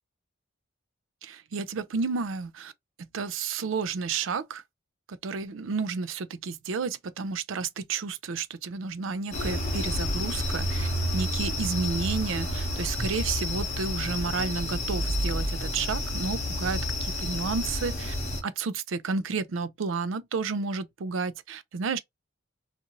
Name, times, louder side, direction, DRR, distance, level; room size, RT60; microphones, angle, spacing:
voice 1, 1.2-2.7 3.0-4.6 5.1-18.1 18.4-22.0, right 4 dB, 75° right, 0.4 m, -31 dB
sound 1, 9.3-18.4, left 1 dB, 35° left, 0.9 m, -30 dB
2.5 x 2.5 x 2.8 m
head